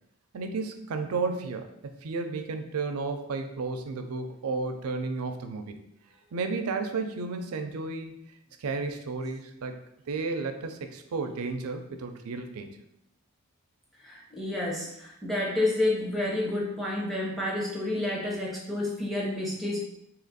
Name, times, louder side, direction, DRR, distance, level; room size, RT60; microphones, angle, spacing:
voice 1, 0.3-5.8 6.3-8.2 8.6-9.8 10.1-12.7, right 4 dB, 80° right, 6 dB, 0.4 m, -32 dB
voice 2, 14.0-19.8, left 1 dB, ahead, -4 dB, 0.6 m, -29 dB
2.8 x 2.5 x 3.9 m, 0.78 s
head